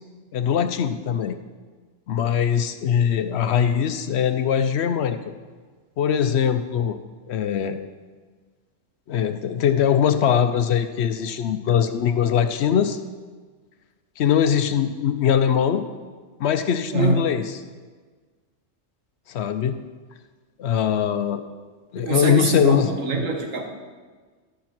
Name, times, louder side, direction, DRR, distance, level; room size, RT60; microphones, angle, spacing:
voice 1, 0.3-1.4 2.1-5.2 6.0-7.0 7.3-7.8 9.1-13.0 14.2-15.8 16.4-17.5 19.3-19.8 20.6-21.4 21.9-22.9, left 8 dB, 65° left, 9 dB, 0.8 m, -21 dB
voice 2, 16.9-17.3 22.0-23.6, right 3 dB, 85° right, 2 dB, 1.7 m, -24 dB
12.0 x 5.1 x 5.9 m, 1.5 s
omnidirectional pair, 1.3 m